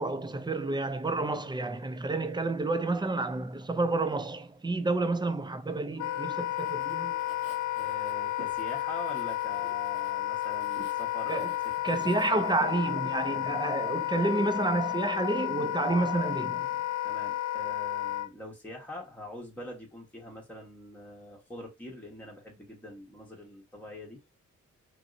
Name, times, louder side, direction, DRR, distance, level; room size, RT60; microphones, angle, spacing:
voice 1, 0.0-7.2 11.3-11.5 11.8-16.7, right 2 dB, 15° right, 0.4 m, -30 dB
Wind instrument woodwind instrument, 6.0-18.3, left 14 dB, 80° left, 0.5 m, -32 dB
Writing, 6.5-12.9, right 4 dB, 50° right, 1.2 m, -55 dB
voice 2, 7.8-12.4 13.3-13.5 17.0-24.2, left 1 dB, 5° left, 1.1 m, -44 dB
3.0 x 2.6 x 2.5 m
cardioid pair, 70°, 30 cm